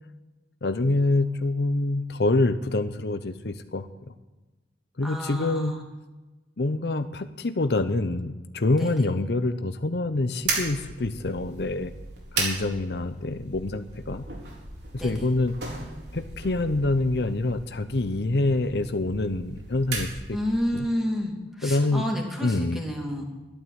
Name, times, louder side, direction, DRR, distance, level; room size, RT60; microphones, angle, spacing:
voice 1, 0.6-4.1 5.0-5.7 6.6-11.9 12.3-14.2 14.9-15.5 16.1-20.4 20.7-20.9 21.6-22.0 22.4-22.8, left 2 dB, 65° left, 10 dB, 0.8 m, -26 dB
voice 2, 5.0-5.8 8.8-8.9 15.0-15.1 20.3-21.3 21.6-23.2, equal, ahead, 0 dB, 2.7 m, -30 dB
sound 1, 10.4-20.7, right 3 dB, 75° right, 4.4 m, -36 dB
12.5 x 11.5 x 7.9 m, 1.2 s
head